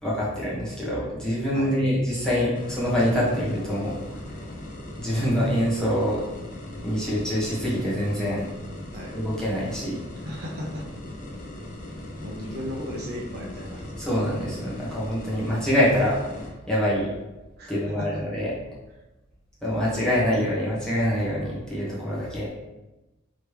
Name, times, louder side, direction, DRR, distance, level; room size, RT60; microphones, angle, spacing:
voice 1, 0.0-4.4 4.9-6.2 6.8-8.4 9.1-10.0 14.0-16.2 16.7-17.1 17.7-18.5 19.6-22.5, equal, 5° left, -8 dB, 1.2 m, -25 dB
sound 1, 2.5-16.5, left 1 dB, 35° left, 0.7 m, -39 dB
voice 2, 10.2-10.9 12.2-14.1 17.6-18.2, equal, 45° right, -2 dB, 0.6 m, -36 dB
4.9 x 3.2 x 3.3 m, 1.0 s
head